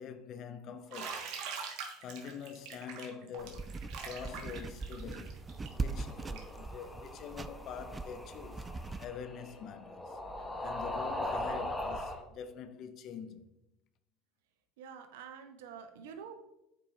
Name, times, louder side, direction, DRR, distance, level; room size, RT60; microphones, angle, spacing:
voice 1, 0.0-1.3 2.0-5.4 5.7-8.7 9.0-13.5, left 7 dB, 50° left, 0.6 m, -45 dB
Bathtub (filling or washing), 0.9-6.6, right 5 dB, 65° right, 1.3 m, -43 dB
sound 1, 3.4-9.1, right 3 dB, 20° right, 0.4 m, -41 dB
sound 2, 5.5-12.2, left 1 dB, 10° left, 1.0 m, -40 dB
voice 2, 14.8-16.3, right 7 dB, 80° right, 0.8 m, -47 dB
8.7 x 4.5 x 3.2 m
supercardioid pair, 90°, 0 cm